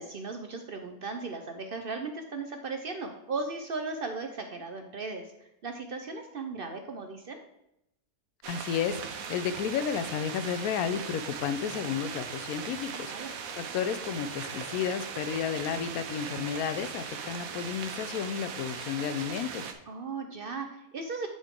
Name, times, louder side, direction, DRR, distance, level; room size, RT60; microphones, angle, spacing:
voice 1, 0.0-7.4 12.9-13.4 19.9-21.3, right 3 dB, 55° right, 5 dB, 0.6 m, -37 dB
sound 1, 8.4-19.7, right 6 dB, 80° right, 1.1 m, -39 dB
voice 2, 8.5-19.7, left 8 dB, 85° left, 12 dB, 1.1 m, -32 dB
9.9 x 4.0 x 3.6 m, 0.83 s
omnidirectional pair, 1.5 m